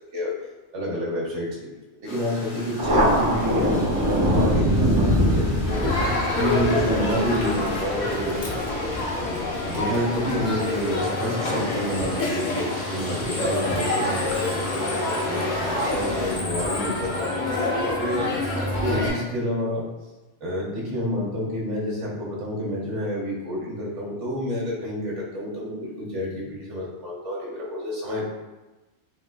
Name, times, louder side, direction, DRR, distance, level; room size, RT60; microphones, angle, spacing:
voice 1, 0.7-1.7 2.0-5.8 6.3-8.4 9.7-18.3 18.8-19.8 20.4-28.2, equal, 85° right, -5 dB, 1.3 m, -29 dB
sound 1, 2.1-16.4, left 1 dB, 70° left, 1.0 m, -38 dB
Thunder, 2.8-9.8, equal, 35° right, 0.3 m, -23 dB
Crowd, 5.7-19.1, left 2 dB, 50° left, 0.7 m, -27 dB
4.3 x 2.6 x 2.2 m, 1.1 s
omnidirectional pair, 1.2 m